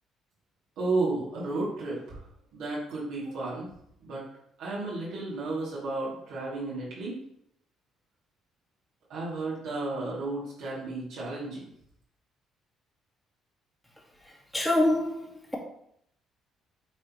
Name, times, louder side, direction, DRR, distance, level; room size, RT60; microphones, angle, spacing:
voice 1, 0.8-2.3 2.5-3.7 4.0-4.3 4.6-7.2 9.1-11.7, right 2 dB, 80° right, -7 dB, 2.5 m, -33 dB
voice 2, 14.5-15.2, left 1 dB, 5° left, -1 dB, 2.0 m, -23 dB
8.6 x 3.8 x 3.1 m, 0.71 s
supercardioid pair, 80°, 0 cm